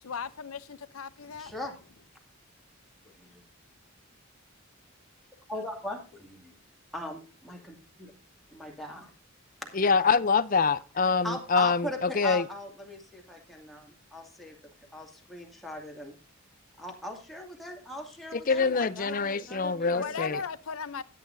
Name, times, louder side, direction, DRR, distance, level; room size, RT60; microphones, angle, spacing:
voice 1, 0.0-1.6 5.5-5.6 20.0-21.0, left 6 dB, 90° left, 0.7 m, -37 dB
voice 2, 1.4-1.7 3.0-3.4 5.5-6.5 6.9-8.1 8.5-9.0 9.6-9.8 11.2-14.6 14.9-16.2 16.8-20.4, left 1 dB, ahead, 2.3 m, -40 dB
voice 3, 9.7-12.4 18.3-20.4, left 5 dB, 40° left, 0.6 m, -25 dB
13.5 x 9.5 x 2.7 m
head